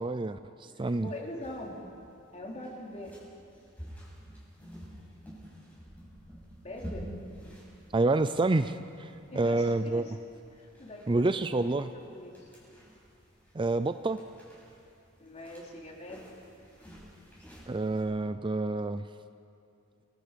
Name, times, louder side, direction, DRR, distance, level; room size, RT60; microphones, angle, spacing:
voice 1, 0.0-1.1 7.9-10.0 11.1-11.9 13.5-14.2 17.7-19.0, right 2 dB, 25° right, 11 dB, 0.5 m, -28 dB
voice 2, 0.7-1.8 2.3-3.1 6.6-7.1 9.3-10.1 10.5-11.8 12.1-12.5 15.2-16.3, left 1 dB, 35° left, -1 dB, 3.6 m, -43 dB
sound 1, 0.9-18.0, equal, 10° left, 7.7 m, -50 dB
29.5 x 22.0 x 5.3 m, 2.6 s
head